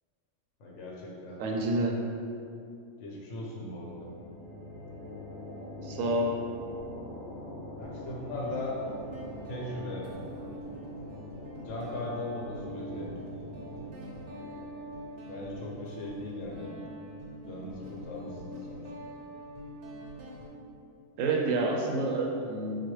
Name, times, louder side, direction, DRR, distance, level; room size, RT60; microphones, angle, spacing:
voice 1, 0.6-1.4 3.0-4.1 7.8-8.7 9.5-10.1 11.6-13.1 15.3-16.7 17.5-18.9, left 1 dB, 70° left, -3 dB, 0.9 m, -38 dB
voice 2, 1.4-1.9 5.8-6.3 21.2-22.8, right 2 dB, 90° right, 0 dB, 1.0 m, -28 dB
sound 1, 3.8-17.2, left 1 dB, 45° left, 0.8 m, -45 dB
Guitar, 6.7-6.8 7.8-20.5, right 1 dB, 65° right, 0.8 m, -44 dB
3.9 x 2.3 x 3.1 m, 2.5 s
omnidirectional pair, 1.3 m